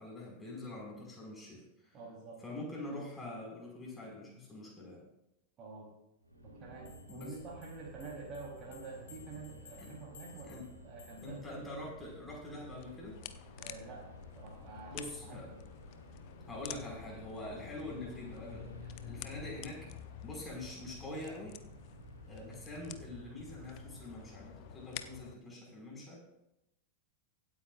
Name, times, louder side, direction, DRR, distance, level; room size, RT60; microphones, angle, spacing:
voice 1, 0.0-2.0 2.4-5.0 7.1-7.3 9.8-10.0 10.4-10.6 11.2-13.2 14.9-15.5 16.5-18.7 19.0-19.9 20.2-21.6 22.3-26.2, left 1 dB, 10° left, -3 dB, 5.5 m, -45 dB
voice 2, 1.9-2.4 5.6-5.9 6.4-11.6 13.6-14.1 14.4-15.6, right 4 dB, 30° right, -2 dB, 3.6 m, -48 dB
sound 1, 6.2-24.9, equal, 85° right, 2.7 m, -53 dB
sound 2, 6.8-11.5, left 6 dB, 65° left, 2.5 m, -59 dB
sound 3, 12.7-25.4, left 12 dB, 45° left, 0.6 m, -50 dB
24.0 x 8.9 x 2.5 m, 0.85 s
figure-of-eight pair, 90°, 0 cm